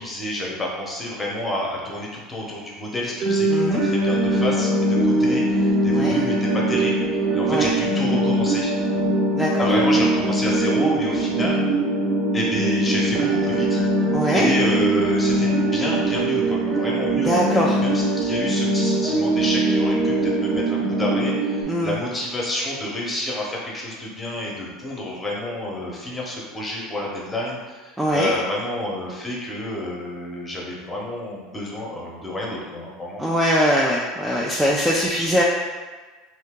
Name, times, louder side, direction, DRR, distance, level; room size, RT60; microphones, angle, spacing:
voice 1, 0.0-7.0 7.3-8.7 9.6-11.7 12.3-13.8 14.3-33.3, left 1 dB, 15° left, -3 dB, 0.9 m, -29 dB
sound 1, 3.2-21.6, right 1 dB, 35° right, 0.9 m, -21 dB
voice 2, 3.5-3.8 5.9-6.2 7.5-7.7 9.3-9.7 14.1-14.5 17.1-17.8 21.7-22.0 28.0-28.3 33.2-35.4, equal, 5° right, -4 dB, 0.4 m, -22 dB
2.8 x 2.7 x 3.6 m, 1.4 s
supercardioid pair, 110°, 0 cm